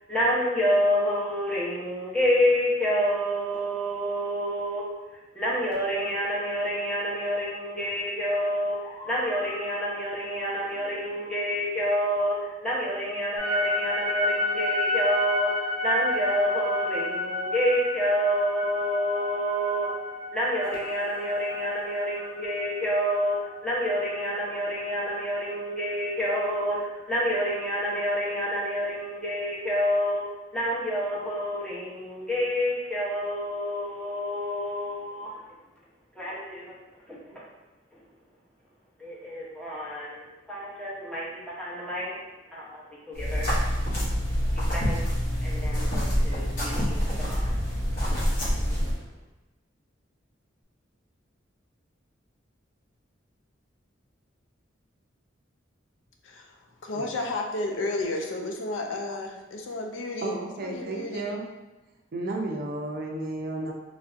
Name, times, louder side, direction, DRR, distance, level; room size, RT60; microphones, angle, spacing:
voice 1, 0.1-4.8 5.3-12.4 12.6-15.5 15.8-19.9 20.3-23.4 23.6-26.8 27.1-30.2 30.5-35.4 36.2-36.7 37.1-37.4 39.0-40.2 40.5-42.1 42.5-43.5 44.6-45.0 45.4-47.0 47.3-47.5, equal, 5° left, 0.7 m, -28 dB
sound 1, 13.4-25.5, left 2 dB, 15° right, 1.2 m, -31 dB
sound 2, 43.1-48.9, equal, 45° left, 0.8 m, -26 dB
voice 2, 56.8-61.3, left 2 dB, 80° left, 0.4 m, -32 dB
voice 3, 60.2-61.5 62.1-63.7, right 2 dB, 50° right, 0.4 m, -32 dB
3.1 x 2.6 x 2.4 m
head